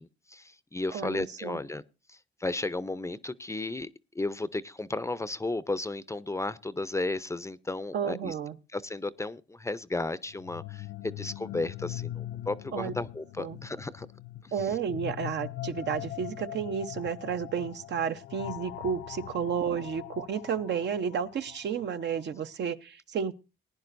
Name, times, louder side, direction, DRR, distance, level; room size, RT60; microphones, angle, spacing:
voice 1, 0.0-1.8 2.1-8.3 8.7-14.1 14.4-14.7 19.6-19.7, left 2 dB, 15° left, 0.6 m, -34 dB
voice 2, 0.9-1.6 7.9-8.6 12.7-12.9 13.4-13.6 14.5-23.3, right 7 dB, 60° right, 0.8 m, -32 dB
sound 1, 10.3-22.1, left 14 dB, 70° left, 0.6 m, -41 dB
20.0 x 10.0 x 2.6 m
cardioid pair, 90°, 20 cm